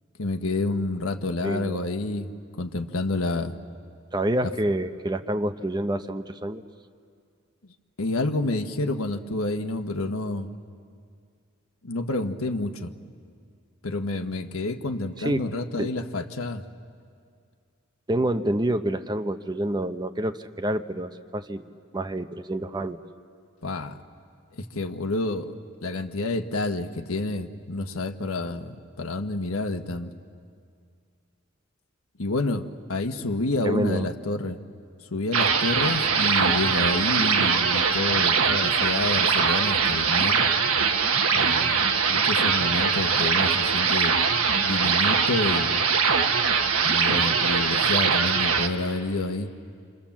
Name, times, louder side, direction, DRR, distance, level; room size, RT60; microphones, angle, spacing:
voice 1, 0.2-2.3 2.6-3.6 4.4-4.5 8.0-10.5 11.8-12.9 13.8-16.6 23.6-23.9 24.5-25.5 25.8-30.1 32.2-34.6 35.1-40.4 41.3-41.8 42.1-44.1 44.5-45.8 46.8-49.5, left 2 dB, 85° left, 6 dB, 1.3 m, -29 dB
voice 2, 1.4-1.8 4.1-6.6 15.2-15.5 15.8-15.9 18.1-23.0 33.6-34.1, right 1 dB, 20° right, 9 dB, 0.7 m, -28 dB
sound 1, 35.3-48.7, right 5 dB, 90° right, 1.4 m, -22 dB
27.5 x 26.0 x 7.3 m, 2.2 s
head